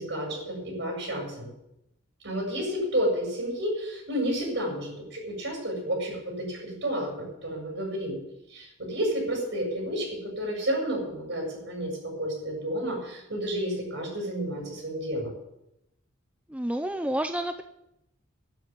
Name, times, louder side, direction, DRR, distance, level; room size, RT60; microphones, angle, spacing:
voice 1, 0.0-1.5 2.2-8.2 8.5-15.3, equal, 60° right, -1 dB, 7.5 m, -31 dB
voice 2, 16.5-17.6, right 1 dB, 5° right, 8 dB, 0.5 m, -29 dB
12.0 x 9.0 x 9.5 m, 0.84 s
head